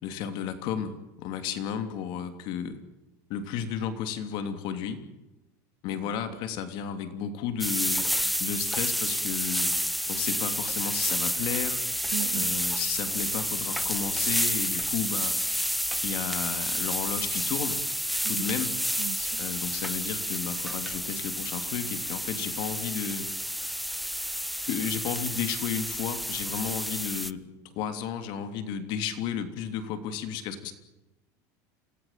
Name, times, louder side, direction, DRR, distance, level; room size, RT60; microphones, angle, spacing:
voice 1, 0.0-2.8 3.3-5.0 5.8-8.1 8.4-9.7 10.1-11.8 12.3-15.4 16.0-17.8 18.3-18.7 19.4-23.3 24.6-30.7, left 8 dB, 55° left, 3.2 m, -33 dB
sound 1, 7.6-27.3, equal, ahead, 0.8 m, -30 dB
voice 2, 12.1-12.7 18.3-19.4, right 18 dB, 70° right, 1.2 m, -38 dB
28.0 x 19.5 x 7.6 m
supercardioid pair, 140°, 9 cm